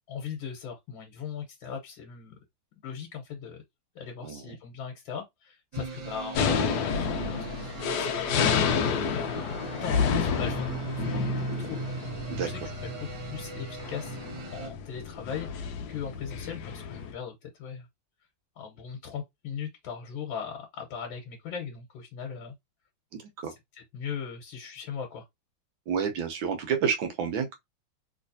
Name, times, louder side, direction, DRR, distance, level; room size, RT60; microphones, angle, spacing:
voice 1, 0.1-2.4 2.8-3.6 3.9-8.7 9.1-9.4 9.8-12.6 13.0-14.2 14.5-17.9 18.5-22.5 23.5-23.6 23.9-25.2, left 7 dB, 90° left, 1.7 m, -39 dB
voice 2, 4.2-4.6 12.3-12.5 23.1-23.5 25.9-27.5, right 7 dB, 85° right, 1.6 m, -30 dB
sound 1, 5.7-14.7, right 4 dB, 65° right, 1.5 m, -38 dB
sound 2, 6.4-17.1, left 6 dB, 70° left, 1.1 m, -30 dB
3.2 x 3.1 x 2.6 m
omnidirectional pair, 2.1 m